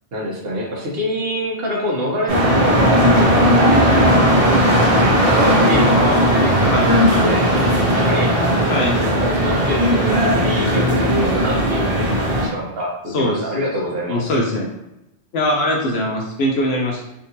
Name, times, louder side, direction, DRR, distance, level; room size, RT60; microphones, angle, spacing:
voice 1, 0.1-7.5 7.9-8.6 9.0-14.2, equal, 55° right, -3 dB, 1.1 m, -26 dB
sound 1, 2.3-12.5, equal, 35° right, 0.8 m, -16 dB
voice 2, 5.8-7.3 8.7-9.0 13.1-13.4 14.1-14.7 15.3-17.0, left 1 dB, 70° left, 0 dB, 0.8 m, -22 dB
3.3 x 2.7 x 2.7 m, 0.90 s
omnidirectional pair, 1.2 m